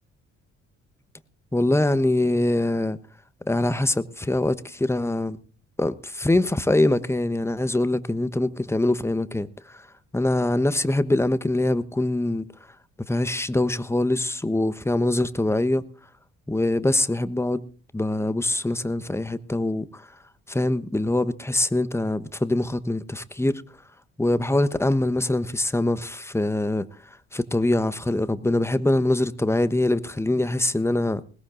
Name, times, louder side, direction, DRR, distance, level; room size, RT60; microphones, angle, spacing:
voice 1, 1.5-3.0 3.5-5.4 5.8-9.9 10.1-12.4 13.1-15.8 16.5-17.6 17.9-20.1 20.5-23.6 24.2-26.9 27.3-31.2, left 1 dB, 5° left, 1.1 m, -23 dB
21.0 x 20.0 x 2.6 m
hypercardioid pair, 45°, 38 cm